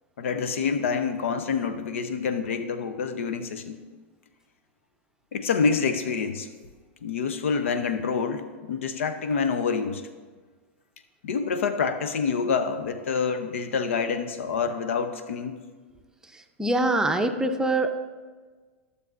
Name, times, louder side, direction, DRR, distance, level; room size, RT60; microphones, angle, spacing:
voice 1, 0.2-3.8 5.3-6.5 7.0-10.0 11.2-15.6, left 5 dB, 80° left, 9 dB, 0.7 m, -27 dB
voice 2, 16.3-17.9, right 2 dB, 10° right, 5 dB, 0.7 m, -24 dB
15.0 x 6.8 x 2.5 m, 1.4 s
hypercardioid pair, 100°, 7 cm